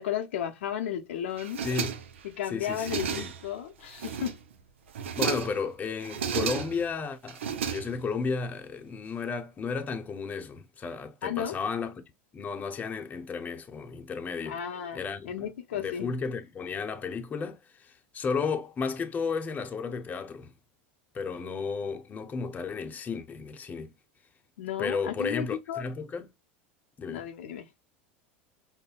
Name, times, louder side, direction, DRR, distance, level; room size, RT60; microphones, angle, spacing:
voice 1, 0.0-1.6 2.4-4.3 11.2-11.6 14.5-15.0 15.2-16.2 24.6-25.8 27.1-27.7, left 9 dB, 85° left, 0.7 m, -34 dB
sound 1, 1.4-2.3 2.6-3.5 3.9-4.5 4.9-5.6 6.0-6.9 7.3-8.2, right 7 dB, 90° right, 0.5 m, -33 dB
voice 2, 2.5-3.3 5.2-12.0 12.3-14.6 14.9-15.5 15.7-20.5 21.1-23.9 24.8-26.3 27.0-27.2, left 5 dB, 25° left, 0.7 m, -33 dB
5.4 x 2.1 x 2.3 m
hypercardioid pair, 105°, 6 cm